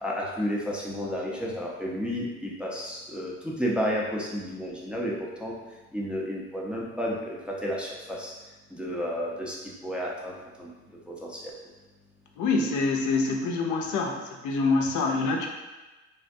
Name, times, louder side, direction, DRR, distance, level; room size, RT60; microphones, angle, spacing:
voice 1, 0.0-5.5 5.9-8.3 8.7-9.6 9.8-10.7 11.1-11.4, equal, 5° right, -4 dB, 0.5 m, -31 dB
voice 2, 12.4-15.5, left 3 dB, 80° left, 1 dB, 0.5 m, -26 dB
3.4 x 2.1 x 2.6 m, 1.1 s
cardioid pair, 90°, 30 cm